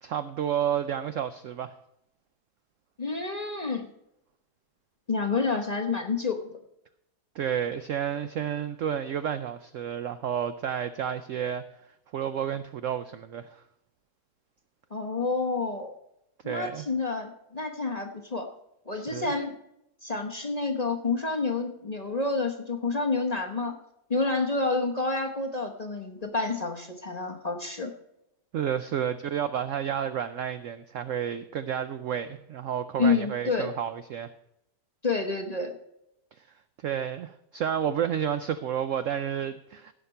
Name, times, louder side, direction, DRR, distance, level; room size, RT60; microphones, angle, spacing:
voice 1, 0.0-1.7 7.3-11.6 12.1-13.6 16.4-16.9 18.9-19.3 28.5-34.3 36.4-36.5 36.8-39.9, right 9 dB, 80° right, 12 dB, 0.7 m, -31 dB
voice 2, 3.0-3.9 5.1-6.4 14.9-15.9 16.4-18.5 18.9-19.5 20.0-23.8 24.1-27.9 33.0-33.7 35.0-35.7, left 3 dB, 30° left, 2 dB, 0.7 m, -29 dB
16.5 x 5.9 x 5.5 m, 0.81 s
omnidirectional pair, 1.9 m